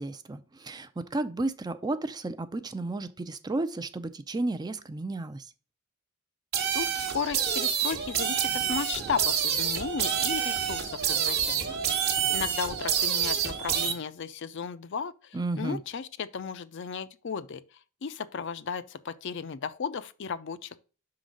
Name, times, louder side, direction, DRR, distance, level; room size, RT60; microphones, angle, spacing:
voice 1, 0.0-5.5 15.3-15.8, right 2 dB, 20° right, 0.4 m, -33 dB
sound 1, 6.5-13.9, right 8 dB, 50° right, 1.0 m, -28 dB
voice 2, 6.7-11.8 12.3-20.8, left 6 dB, 55° left, 0.5 m, -35 dB
6.0 x 3.9 x 6.2 m
head